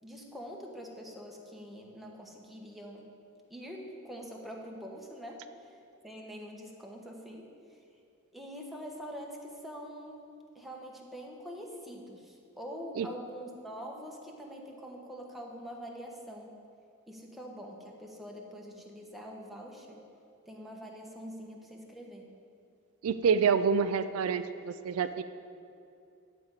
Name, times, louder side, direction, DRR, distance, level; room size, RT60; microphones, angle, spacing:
voice 1, 0.0-3.1 3.5-5.8 6.0-7.8 8.3-10.2 10.5-16.5 17.1-20.0 20.5-22.3, equal, ahead, -1 dB, 1.2 m, -44 dB
voice 2, 23.0-25.2, right 6 dB, 75° right, 11 dB, 0.4 m, -27 dB
10.5 x 5.3 x 8.0 m, 2.6 s
head